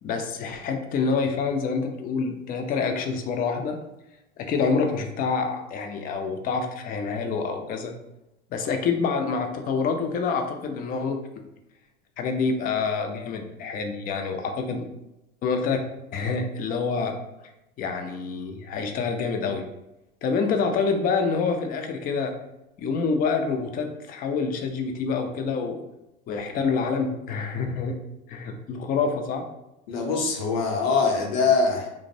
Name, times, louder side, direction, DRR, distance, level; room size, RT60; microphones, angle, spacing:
voice 1, 0.0-3.8 4.4-7.9 8.5-11.2 12.2-14.9 15.4-15.8 16.1-17.1 17.8-19.6 20.2-22.3 22.8-25.8 26.3-28.0 28.3-29.4, left 5 dB, 30° left, 4 dB, 0.4 m, -27 dB
voice 2, 29.9-31.9, left 4 dB, 75° left, 1 dB, 0.7 m, -23 dB
2.5 x 2.0 x 2.6 m, 0.90 s
supercardioid pair, 100°, 29 cm